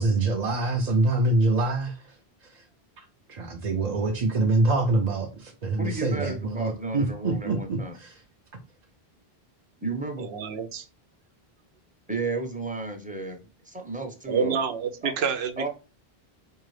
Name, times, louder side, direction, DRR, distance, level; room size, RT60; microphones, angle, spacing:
voice 1, 0.0-2.0 3.3-8.1, right 2 dB, 50° right, 0.6 m, -25 dB
voice 2, 5.8-8.0 9.8-10.3 12.1-14.6 15.0-15.1 15.6-15.7, right 3 dB, 10° right, 0.6 m, -32 dB
voice 3, 10.2-10.8 14.3-15.7, right 6 dB, 85° right, 0.9 m, -28 dB
4.7 x 2.7 x 3.1 m
omnidirectional pair, 1.0 m